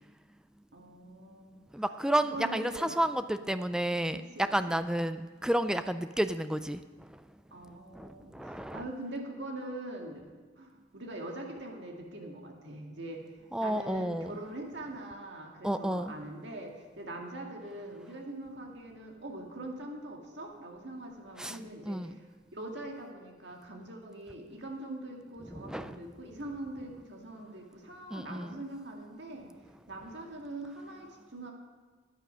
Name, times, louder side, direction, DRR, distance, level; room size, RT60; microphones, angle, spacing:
voice 1, 0.7-1.6 2.3-3.0 3.4-3.5 4.1-4.8 7.5-10.3 10.6-22.2 22.5-29.5 29.9-31.5, right 1 dB, 65° right, 1 dB, 2.0 m, -43 dB
voice 2, 1.7-4.2 4.5-7.1 7.9-8.8 13.5-14.3 15.6-16.1 21.4-21.6 21.9-22.1 25.5-26.0 28.1-28.6, right 1 dB, 5° right, 10 dB, 0.3 m, -31 dB
14.0 x 9.2 x 5.6 m, 1.4 s
head